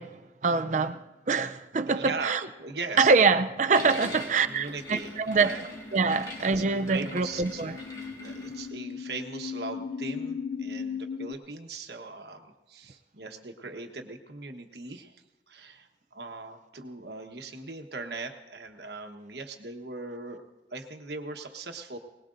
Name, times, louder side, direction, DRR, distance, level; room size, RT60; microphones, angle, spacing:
voice 1, 0.0-2.5 3.0-5.6 5.9-7.8, right 4 dB, 40° right, 0.5 m, -25 dB
voice 2, 1.9-2.3 2.6-3.1 4.5-5.6 6.5-7.6 8.1-20.4 20.7-22.0, right 3 dB, 65° right, 1.2 m, -39 dB
sound 1, 2.9-11.3, left 6 dB, 40° left, 0.4 m, -39 dB
sound 2, 3.7-8.7, left 1 dB, 20° left, 1.8 m, -42 dB
21.0 x 19.5 x 2.6 m
head